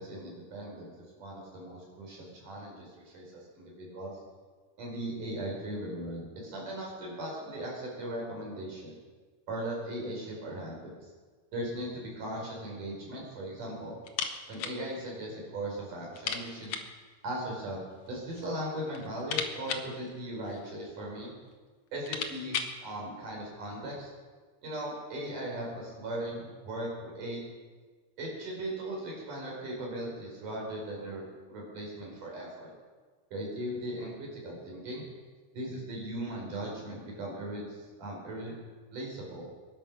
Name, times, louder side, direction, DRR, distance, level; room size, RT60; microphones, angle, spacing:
voice 1, 0.0-4.1 4.8-8.9 9.5-10.9 11.5-14.0 14.5-16.8 17.2-21.3 21.9-24.1 24.6-27.4 28.2-32.7 33.3-35.1 35.5-38.6 38.9-39.5, right 1 dB, 50° right, -2 dB, 5.8 m, -38 dB
sound 1, 14.0-14.8 15.1-15.2 15.5-15.6 16.1-17.0 17.9-18.5 18.8-20.8 21.5-21.6 21.9-22.8, left 6 dB, 80° left, 1.4 m, -37 dB
21.5 x 11.0 x 6.1 m, 1.4 s
omnidirectional pair, 4.7 m